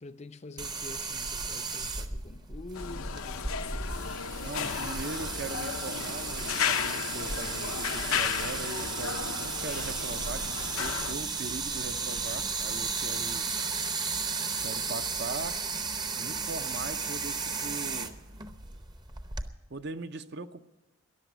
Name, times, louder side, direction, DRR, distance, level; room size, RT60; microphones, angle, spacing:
voice 1, 0.0-4.2, left 2 dB, 30° left, 0.5 m, -46 dB
sound 1, 0.6-19.5, right 4 dB, 20° right, 0.7 m, -34 dB
sound 2, 2.7-11.1, left 7 dB, 90° left, 0.8 m, -34 dB
voice 2, 4.4-13.5 14.6-15.6 16.2-18.1 19.7-20.6, right 3 dB, 50° right, 0.7 m, -40 dB
sound 3, 4.7-18.9, right 1 dB, 70° right, 1.4 m, -52 dB
13.5 x 11.0 x 9.3 m
head